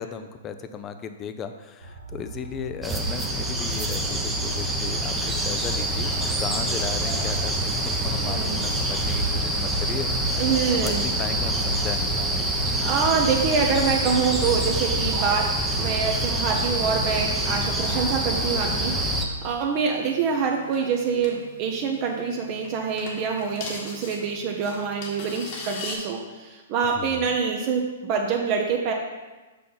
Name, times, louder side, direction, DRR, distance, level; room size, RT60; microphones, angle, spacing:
voice 1, 0.0-10.4 10.7-12.6 26.8-27.3, left 6 dB, 25° left, 9 dB, 0.5 m, -36 dB
sound 1, 1.8-13.0, right 3 dB, 80° right, 1.1 m, -39 dB
sound 2, 2.8-19.3, right 1 dB, 10° right, 0.8 m, -26 dB
voice 2, 8.2-8.6 10.4-11.1 12.7-28.9, right 6 dB, 40° right, 1 dB, 0.8 m, -26 dB
sound 3, 17.4-25.9, left 3 dB, 50° left, 1.6 m, -42 dB
6.4 x 5.8 x 4.0 m, 1.2 s
hypercardioid pair, 120°, 0 cm